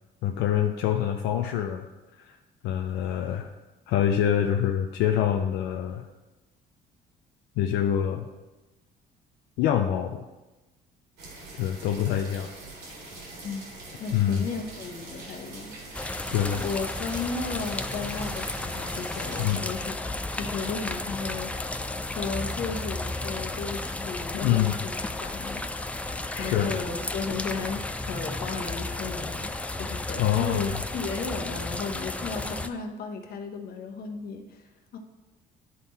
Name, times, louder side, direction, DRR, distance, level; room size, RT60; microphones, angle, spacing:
voice 1, 0.2-1.9 2.2-2.4 2.6-3.5 3.9-6.1 7.6-8.3 9.6-10.3 11.6-12.5 14.1-14.5 16.3-16.6 19.4-19.6 24.3-24.8 26.3-26.7 30.2-30.8, left 10 dB, 90° left, 4 dB, 0.5 m, -25 dB
sound 1, 11.2-19.6, right 2 dB, 90° right, 2.4 m, -43 dB
voice 2, 14.0-15.8 16.6-21.7 22.0-25.6 26.0-29.5 29.8-35.0, left 4 dB, 65° left, 4 dB, 1.1 m, -35 dB
sound 2, 15.9-32.7, left 2 dB, 10° left, 0.3 m, -33 dB
11.0 x 3.8 x 4.1 m, 1.1 s
cardioid pair, 110°, 17 cm